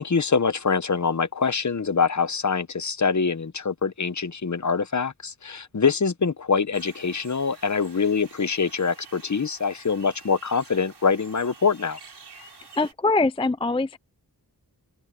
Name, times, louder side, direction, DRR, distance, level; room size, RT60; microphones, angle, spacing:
voice 1, 0.0-12.0, left 5 dB, 45° left, 1.0 m, -24 dB
sound 1, 6.7-12.9, right 4 dB, 85° right, 5.1 m, -49 dB
voice 2, 12.8-14.0, left 3 dB, 15° left, 0.4 m, -23 dB
wide cardioid pair, 85°, 38 cm